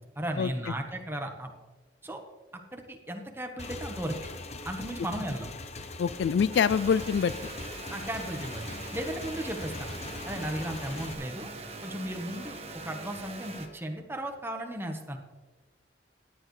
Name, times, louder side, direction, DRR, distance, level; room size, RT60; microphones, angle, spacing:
voice 1, 0.2-1.5 2.0-2.2 2.7-4.1 4.6-5.5 7.9-8.6 8.9-9.9 10.3-11.5 11.8-12.6 12.8-15.2, right 1 dB, 10° right, 3 dB, 1.2 m, -35 dB
Motorcycle / Engine, 3.6-11.1, left 3 dB, 35° left, 0.8 m, -41 dB
voice 2, 6.0-7.3, left 7 dB, 65° left, 17 dB, 0.3 m, -25 dB
sound 1, 6.5-13.7, right 3 dB, 35° right, 1.4 m, -42 dB
16.5 x 10.5 x 3.2 m, 1.3 s
head